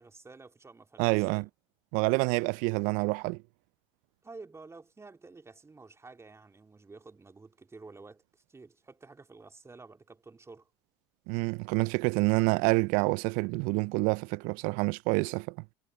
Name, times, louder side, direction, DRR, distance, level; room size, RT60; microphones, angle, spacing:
voice 1, 0.0-1.5 4.2-10.7, right 3 dB, 20° right, 3.0 m, -51 dB
voice 2, 1.0-1.5 1.9-3.4 11.3-15.6, right 29 dB, 65° right, 0.5 m, -27 dB
hypercardioid pair, 80°, 16 cm